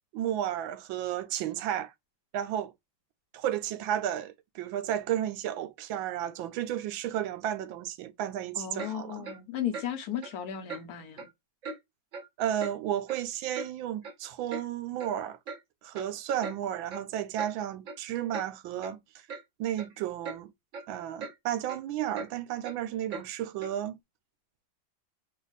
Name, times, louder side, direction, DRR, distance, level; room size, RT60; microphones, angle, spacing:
voice 1, 0.1-1.9 2.3-2.7 3.3-9.3 12.4-15.4 15.8-19.0 19.6-20.5 20.9-24.0, right 11 dB, 85° right, 1.4 m, -33 dB
voice 2, 8.5-11.3, left 9 dB, 60° left, 1.1 m, -35 dB
Clock, 8.8-8.9 9.2-9.4 9.7-9.9 10.2-10.3 10.7-10.8 11.2-11.3 11.6-11.8 12.1-12.3 12.6-12.7 13.1-13.7 14.0-14.1 14.5-14.6 15.0-15.1 15.5-15.6 15.9-16.1 16.4-16.6 16.9-17.1 17.4-17.5 17.8-18.0 18.3-18.5 18.8-18.9 19.3-19.4 19.8-19.9 20.2-20.4 20.7-20.9 21.2-21.4 21.6-21.8 22.1-22.3 22.6-22.8 23.1-23.3 23.6-23.7, right 4 dB, 45° right, 1.4 m, -39 dB
5.3 x 2.4 x 4.0 m
omnidirectional pair, 2.1 m